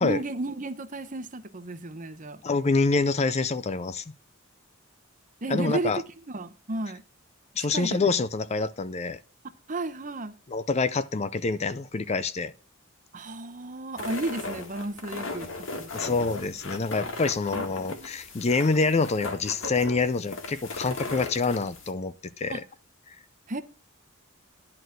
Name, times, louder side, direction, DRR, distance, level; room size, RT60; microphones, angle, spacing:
voice 1, 0.0-2.4 5.4-5.9 6.3-7.0 7.7-8.1 9.7-10.3 13.1-16.2 17.5-18.1 22.5-22.6 23.5-23.6, right 2 dB, 40° right, 0.9 m, -33 dB
voice 2, 2.4-4.0 5.5-6.0 7.6-9.2 10.5-12.5 15.9-22.6 23.1-23.2, left 3 dB, 30° left, 0.5 m, -26 dB
sound 1, 14.0-21.9, left 3 dB, 65° left, 1.9 m, -37 dB
11.0 x 4.3 x 7.9 m
head